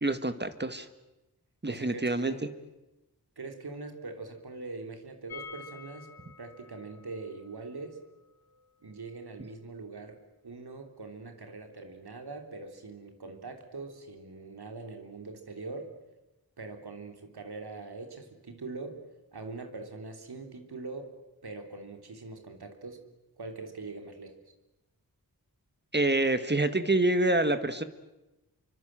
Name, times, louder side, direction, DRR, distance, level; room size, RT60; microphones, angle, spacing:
voice 1, 0.0-0.9 1.6-2.3 25.9-27.8, right 2 dB, 25° right, 10 dB, 1.9 m, -26 dB
voice 2, 1.7-2.5 3.4-6.1 6.4-8.0 8.8-10.2 10.4-15.9 16.6-19.0 19.3-21.1 21.4-23.0 23.4-24.3, right 3 dB, 80° right, 5 dB, 3.4 m, -42 dB
sound 1, 5.3-11.1 11.3-11.4 11.7-11.8, left 6 dB, 75° left, 3.7 m, -51 dB
28.0 x 24.0 x 7.7 m, 0.99 s
wide cardioid pair, 65°, 38 cm